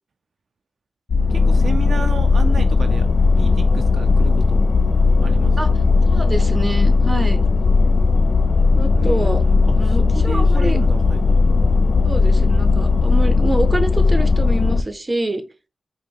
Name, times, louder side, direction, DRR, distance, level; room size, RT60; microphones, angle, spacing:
sound 1, 1.1-14.8, left 4 dB, 70° left, 0.4 m, -16 dB
voice 1, 1.3-3.1 3.4-4.7 5.2-5.8 8.9-11.3, right 5 dB, 75° right, 7 dB, 0.4 m, -32 dB
voice 2, 6.1-7.4 8.7-9.4 9.8-10.8 12.0-15.4, right 2 dB, 30° right, 9 dB, 0.7 m, -26 dB
4.9 x 2.1 x 3.6 m, 0.30 s
cardioid pair, 55°, 0 cm